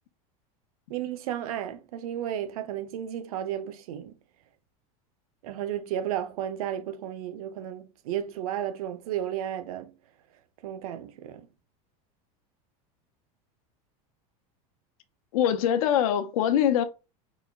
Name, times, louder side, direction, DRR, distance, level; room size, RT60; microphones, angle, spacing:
voice 1, 0.9-4.2 5.4-9.9 10.6-11.5, right 10 dB, 85° right, 0.7 m, -33 dB
voice 2, 15.3-16.8, left 10 dB, 75° left, 0.9 m, -23 dB
4.2 x 2.3 x 3.4 m
supercardioid pair, 165°, 18 cm